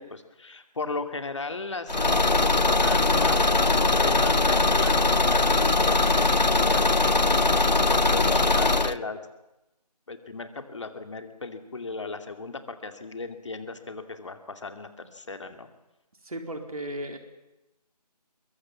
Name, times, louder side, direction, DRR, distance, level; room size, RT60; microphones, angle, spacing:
voice 1, 0.0-9.2 10.1-15.7, left 3 dB, 45° left, 7 dB, 2.5 m, -37 dB
Car / Engine, 1.9-9.0, left 3 dB, 90° left, 0.8 m, -21 dB
voice 2, 16.2-17.2, right 1 dB, 60° right, 4 dB, 4.0 m, -35 dB
24.0 x 23.0 x 7.3 m, 0.96 s
figure-of-eight pair, 160°, 21 cm